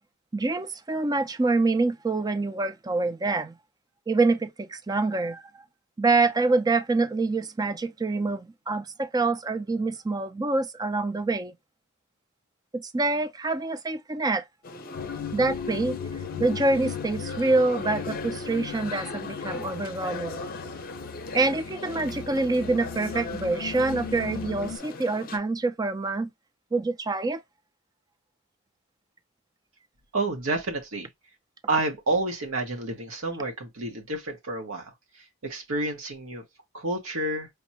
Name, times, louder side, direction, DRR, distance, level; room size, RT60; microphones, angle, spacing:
voice 1, 0.3-3.5 4.1-5.4 6.0-11.5 12.7-14.4 15.3-16.0 16.4-20.4 21.3-26.3 26.7-27.4, right 3 dB, 20° right, 0.4 m, -26 dB
sound 1, 14.6-25.4, left 2 dB, 45° left, 0.6 m, -38 dB
sound 2, 14.9-24.8, left 8 dB, 90° left, 0.4 m, -38 dB
voice 2, 30.1-31.1 31.7-34.8 35.4-36.4 36.7-37.5, right 2 dB, 75° right, 1.0 m, -29 dB
5.1 x 2.1 x 2.8 m
head